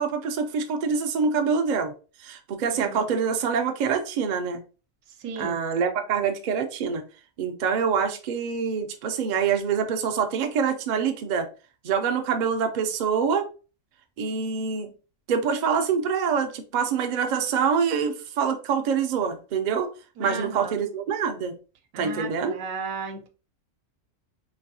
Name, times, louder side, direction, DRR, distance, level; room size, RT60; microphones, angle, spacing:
voice 1, 0.0-1.9 2.2-4.6 5.4-7.0 7.4-11.5 11.8-13.5 14.2-14.9 15.3-19.9 20.2-21.5 22.0-22.6, right 6 dB, 70° right, 0.4 m, -25 dB
voice 2, 2.7-3.1 5.2-5.6 20.2-20.8 21.9-23.3, right 4 dB, 85° right, 1.0 m, -35 dB
3.2 x 2.6 x 2.6 m
omnidirectional pair, 1.3 m